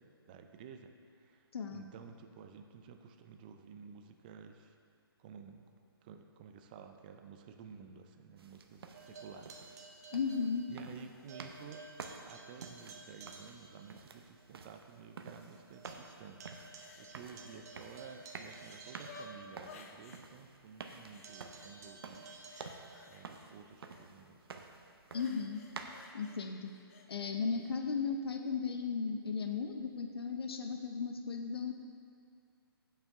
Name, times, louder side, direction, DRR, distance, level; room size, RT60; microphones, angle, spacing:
voice 1, 0.0-4.8 5.2-5.7 6.0-9.7 10.0-10.1 10.7-11.9 12.2-22.3 23.1-24.4, right 6 dB, 20° right, 6 dB, 0.4 m, -53 dB
voice 2, 1.5-1.9 10.1-10.7 25.1-25.6 26.1-26.7 27.1-31.7, left 5 dB, 70° left, 5 dB, 0.7 m, -36 dB
sound 1, 8.4-26.1, right 4 dB, 70° right, 0.8 m, -51 dB
sound 2, 8.9-11.0 11.3-13.9 14.4-14.5 14.9-15.0 15.2-20.0 21.2-23.1, right 3 dB, 40° right, 1.1 m, -54 dB
sound 3, 16.5-17.7 18.0-20.3 20.8-21.7 22.1-24.1 25.1-27.1 27.6-27.7, left 4 dB, 35° left, 0.7 m, -56 dB
16.0 x 5.6 x 3.6 m, 2.3 s
hypercardioid pair, 160°, 13 cm